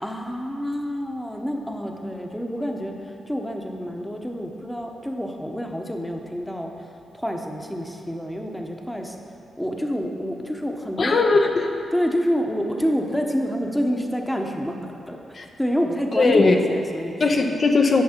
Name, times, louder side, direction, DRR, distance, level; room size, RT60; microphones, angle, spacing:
voice 1, 0.0-6.7 7.1-9.2 9.6-11.2 11.9-15.2 15.6-17.1, equal, 5° left, 2 dB, 0.9 m, -27 dB
voice 2, 11.0-11.7 15.3-15.4 16.2-16.5 17.2-18.0, left 3 dB, 50° left, 2 dB, 0.7 m, -18 dB
11.0 x 5.3 x 4.4 m, 2.6 s
cardioid pair, 65°, 0 cm